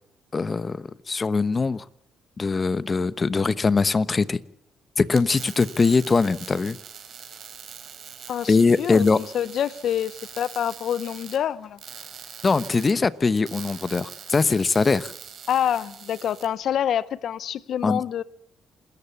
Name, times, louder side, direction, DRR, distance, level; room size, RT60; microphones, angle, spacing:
voice 1, 0.3-1.8 2.4-4.4 5.0-6.8 8.5-9.2 12.4-15.1 17.8-18.0, left 4 dB, 30° left, 1.0 m, -22 dB
sound 1, 5.0-16.5, right 7 dB, 60° right, 4.2 m, -43 dB
voice 2, 8.3-11.8 15.5-18.2, left 9 dB, 65° left, 0.8 m, -27 dB
27.0 x 14.0 x 7.2 m
cardioid pair, 90°, 0 cm